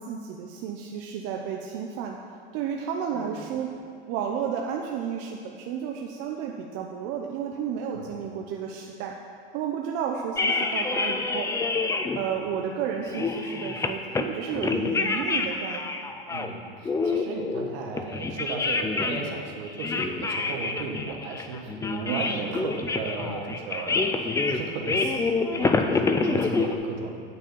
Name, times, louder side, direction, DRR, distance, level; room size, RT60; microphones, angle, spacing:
voice 1, 0.0-2.2 2.5-3.7 4.1-9.1 9.5-11.5 12.2-15.9 22.1-22.4, right 7 dB, 55° right, 1 dB, 0.7 m, -32 dB
sound 1, 10.4-12.2 12.6-12.7 13.1-14.3 14.5-16.5 16.9-19.3 19.7-26.8, left 4 dB, 10° left, 0.4 m, -27 dB
voice 2, 16.3-27.2, right 4 dB, 70° right, 2 dB, 1.4 m, -35 dB
8.9 x 4.5 x 6.8 m, 2.2 s
supercardioid pair, 115°, 29 cm